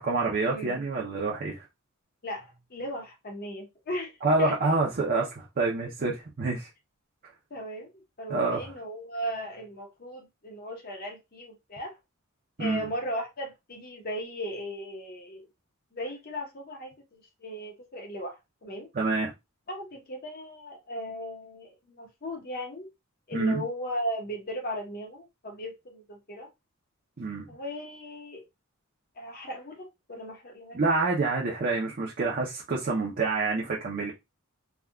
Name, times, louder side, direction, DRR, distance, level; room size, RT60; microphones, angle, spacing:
voice 1, 0.0-1.6 4.2-6.7 8.3-8.7 12.6-12.8 18.9-19.3 23.3-23.6 27.2-27.5 30.7-34.1, right 3 dB, 45° right, 0.5 m, -27 dB
voice 2, 2.2-4.1 4.4-4.5 7.5-11.9 12.6-15.5 15.9-18.9 19.7-22.9 23.3-26.5 27.5-28.4 29.2-30.8, equal, 45° left, 0.9 m, -37 dB
3.5 x 2.2 x 2.2 m
head